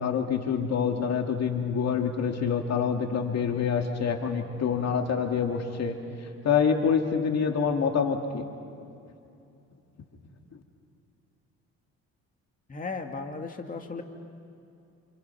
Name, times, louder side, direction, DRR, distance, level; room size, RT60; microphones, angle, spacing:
voice 1, 0.0-8.4, left 6 dB, 60° left, 4 dB, 2.5 m, -26 dB
voice 2, 12.7-14.0, left 4 dB, 25° left, 3 dB, 2.2 m, -35 dB
30.0 x 29.0 x 5.9 m, 2.6 s
cardioid pair, 90°, 30 cm